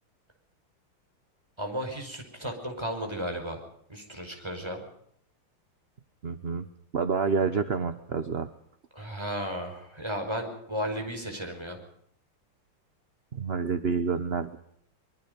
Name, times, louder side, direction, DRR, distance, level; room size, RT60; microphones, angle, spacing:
voice 1, 1.6-3.6 3.9-4.8 8.9-11.8, equal, 10° right, 3 dB, 5.5 m, -34 dB
voice 2, 6.2-6.6 6.9-8.5 13.3-14.6, right 5 dB, 40° right, 10 dB, 0.9 m, -28 dB
24.5 x 22.5 x 5.3 m, 0.67 s
omnidirectional pair, 2.3 m